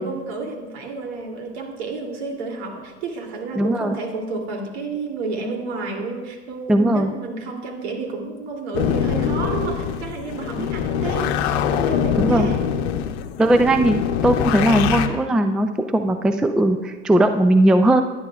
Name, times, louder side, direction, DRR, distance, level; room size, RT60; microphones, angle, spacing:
voice 1, 0.0-13.0, right 4 dB, 65° right, 1 dB, 2.8 m, -31 dB
voice 2, 3.6-3.9 6.7-7.1 10.6-10.7 12.2-12.5 13.4-18.0, right 1 dB, ahead, 8 dB, 0.4 m, -18 dB
sound 1, 8.7-15.1, left 8 dB, 60° left, 0.9 m, -23 dB
18.0 x 10.5 x 2.4 m, 1.2 s
hypercardioid pair, 100°, 35 cm